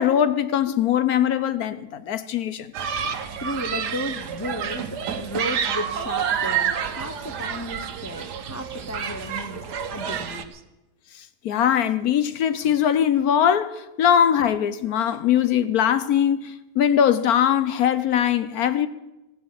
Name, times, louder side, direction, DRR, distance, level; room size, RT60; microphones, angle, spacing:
voice 1, 0.0-2.7 11.2-18.9, left 9 dB, 70° left, 1.2 m, -21 dB
Human group actions, 2.7-10.4, right 7 dB, 90° right, 1.6 m, -29 dB
voice 2, 3.4-9.6 9.9-10.6, equal, 20° left, 0.5 m, -34 dB
16.0 x 9.0 x 9.3 m
omnidirectional pair, 1.7 m